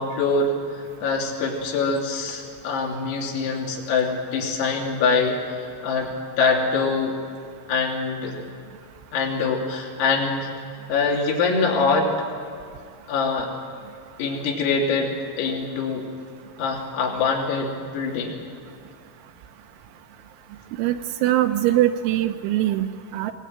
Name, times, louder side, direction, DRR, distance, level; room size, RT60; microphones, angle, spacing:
voice 1, 0.0-6.1 6.4-7.2 7.7-8.4 9.1-10.5 10.9-12.1 13.1-13.5 14.2-16.1 16.6-18.4, left 4 dB, 80° left, -1 dB, 5.4 m, -24 dB
voice 2, 20.8-23.3, right 13 dB, 80° right, 8 dB, 2.9 m, -22 dB
21.5 x 19.5 x 9.1 m, 2.3 s
omnidirectional pair, 5.9 m